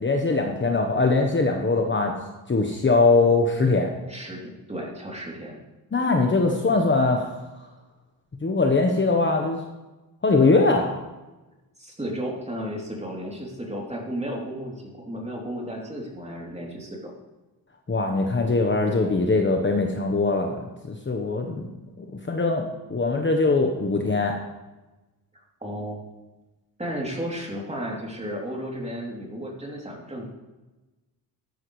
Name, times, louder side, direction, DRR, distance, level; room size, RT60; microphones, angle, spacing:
voice 1, 0.0-2.1 2.5-3.9 5.9-7.4 8.4-9.6 10.2-11.0 17.9-21.7 22.0-24.3, left 3 dB, 25° left, 2 dB, 1.2 m, -22 dB
voice 2, 4.1-5.6 11.8-17.1 25.6-26.0 26.8-30.3, equal, 15° right, -1 dB, 3.2 m, -33 dB
13.5 x 10.5 x 3.3 m, 1.1 s
cardioid pair, 90°, 41 cm